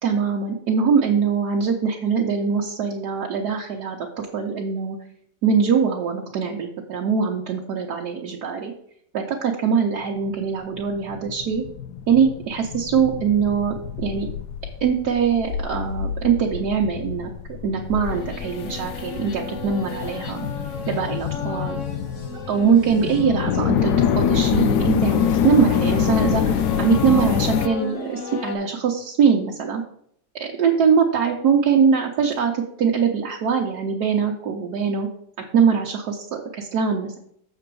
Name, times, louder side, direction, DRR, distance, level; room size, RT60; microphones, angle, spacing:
voice 1, 0.0-5.0 5.4-8.7 9.1-11.6 12.1-14.3 14.8-17.3 17.6-20.4 20.9-21.8 22.5-29.8 30.3-35.1 35.5-37.2, right 6 dB, 65° right, 0 dB, 1.4 m, -22 dB
sound 1, 10.5-27.7, left 8 dB, 75° left, 1.1 m, -26 dB
sound 2, 18.1-28.5, left 3 dB, 50° left, 1.2 m, -34 dB
7.1 x 6.8 x 4.6 m, 0.67 s
omnidirectional pair, 1.9 m